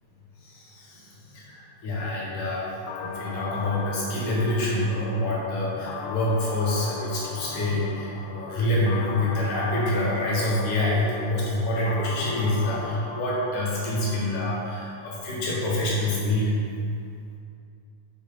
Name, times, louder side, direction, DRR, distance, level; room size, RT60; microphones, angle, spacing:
voice 1, 0.4-2.7 3.0-16.5, left 1 dB, 70° left, -5 dB, 2.9 m, -26 dB
sound 1, 2.9-14.9, left 4 dB, 85° left, 1.7 m, -39 dB
6.4 x 6.4 x 3.7 m, 2.4 s
omnidirectional pair, 4.1 m